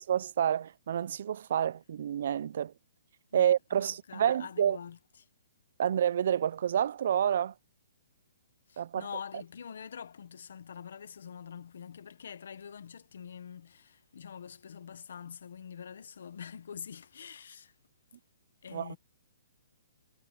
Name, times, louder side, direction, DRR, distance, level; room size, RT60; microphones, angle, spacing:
voice 1, 0.0-2.7 3.3-4.8 5.8-7.5 8.8-9.1 18.7-19.0, right 9 dB, 40° right, 0.3 m, -29 dB
voice 2, 3.7-5.3 8.7-17.7 18.6-19.0, left 7 dB, 55° left, 0.9 m, -45 dB
hypercardioid pair, 180°, 0 cm